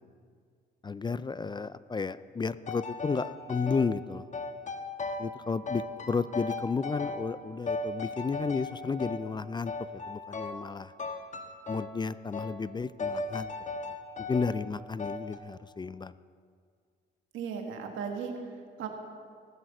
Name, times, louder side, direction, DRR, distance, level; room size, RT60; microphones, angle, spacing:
voice 1, 0.8-4.3 5.2-10.9 11.7-13.5 14.2-16.1, left 4 dB, 20° left, 16 dB, 0.4 m, -33 dB
sound 1, 2.6-3.9 4.3-5.4 5.7-7.4 7.7-9.2 9.7-10.7 11.0-12.0 12.3-12.6 13.0-14.6 15.0-15.4, left 3 dB, 40° left, 1.3 m, -37 dB
voice 2, 17.3-18.9, right 6 dB, 85° right, 4 dB, 1.8 m, -37 dB
17.5 x 7.7 x 7.5 m, 2.1 s
cardioid pair, 90°, 20 cm